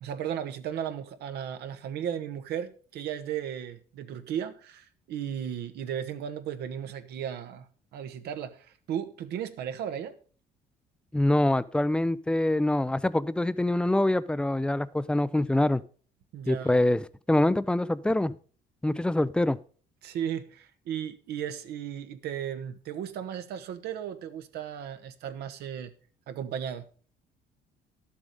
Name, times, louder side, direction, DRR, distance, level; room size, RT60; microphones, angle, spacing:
voice 1, 0.0-7.7 7.9-10.2 16.3-16.8 20.0-25.9 26.3-26.9, right 9 dB, 75° right, 1.3 m, -35 dB
voice 2, 11.1-15.8 16.5-18.3 18.8-19.6, left 1 dB, 5° left, 0.5 m, -25 dB
12.0 x 7.3 x 5.3 m
cardioid pair, 110°, 17 cm